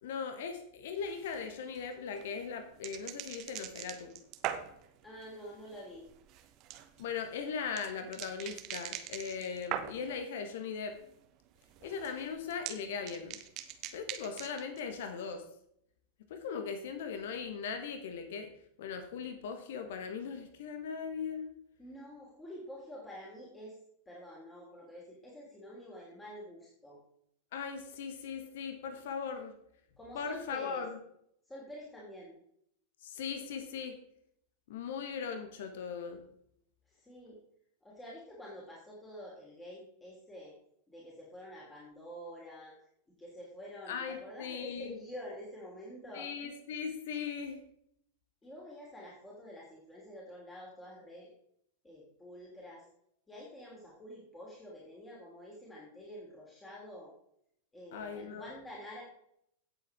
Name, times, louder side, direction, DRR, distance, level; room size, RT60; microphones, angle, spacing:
voice 1, 0.0-4.1 7.0-11.0 11.8-13.4 13.9-15.4 16.3-18.5 18.8-21.5 27.5-29.5 30.1-31.0 33.0-34.0 34.7-36.2 43.9-44.9 46.1-47.6 57.9-58.5, left 6 dB, 55° left, 8 dB, 1.3 m, -39 dB
sound 1, 1.0-10.3 10.6-11.2 11.4-14.8, right 11 dB, 40° right, 1.0 m, -43 dB
voice 2, 5.0-6.1 21.8-23.8 24.0-27.0 30.0-30.8 31.4-32.4 36.9-37.4 37.8-40.5 40.9-42.7 43.2-46.3 48.4-51.3 51.8-52.8 53.3-57.1 57.7-59.0, equal, 15° left, -4 dB, 3.3 m, -48 dB
17.0 x 7.3 x 3.6 m, 0.72 s
figure-of-eight pair, 90°, 0 cm